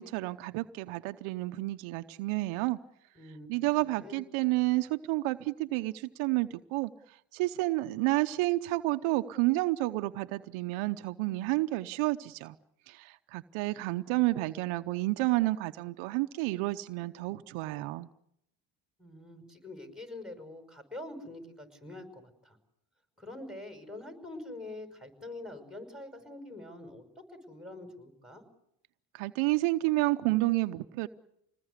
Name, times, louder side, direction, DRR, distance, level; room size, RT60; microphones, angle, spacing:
voice 1, 0.0-2.8 3.5-6.9 7.3-12.5 12.9-18.1 29.1-31.1, right 20 dB, 80° right, 9 dB, 0.9 m, -30 dB
voice 2, 3.2-3.6 3.9-4.2 19.0-22.6 23.2-28.4, left 2 dB, ahead, 8 dB, 5.6 m, -45 dB
26.5 x 20.0 x 8.2 m, 0.79 s
supercardioid pair, 70°, 48 cm